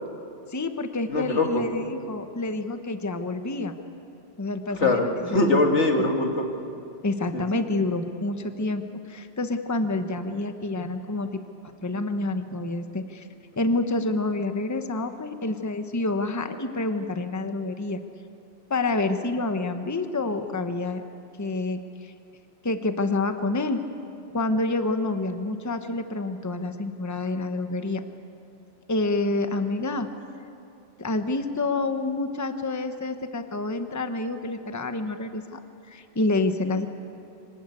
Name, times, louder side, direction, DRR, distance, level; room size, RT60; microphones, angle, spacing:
voice 1, 0.5-3.7 4.4-5.4 7.0-8.8 9.1-11.4 11.8-13.3 13.6-18.0 18.7-21.0 21.4-22.1 22.6-23.8 24.3-28.0 28.9-30.1 31.0-35.6 35.9-36.9, left 2 dB, 15° left, 7 dB, 0.9 m, -28 dB
voice 2, 1.1-1.7 4.7-6.5 7.3-7.6, left 2 dB, 75° left, 2 dB, 2.3 m, -23 dB
25.5 x 18.5 x 8.4 m, 2.7 s
omnidirectional pair, 1.2 m